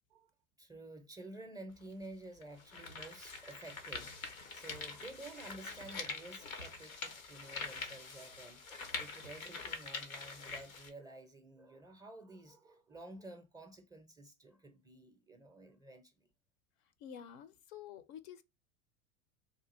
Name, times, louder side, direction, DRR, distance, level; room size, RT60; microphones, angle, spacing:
voice 1, 0.6-16.1, right 2 dB, 10° right, 0.4 m, -52 dB
sound 1, 1.7-1.8 2.4-10.9, left 4 dB, 90° left, 0.8 m, -45 dB
voice 2, 17.0-18.4, left 9 dB, 55° left, 0.5 m, -49 dB
3.2 x 2.3 x 2.9 m
hypercardioid pair, 80°, 40 cm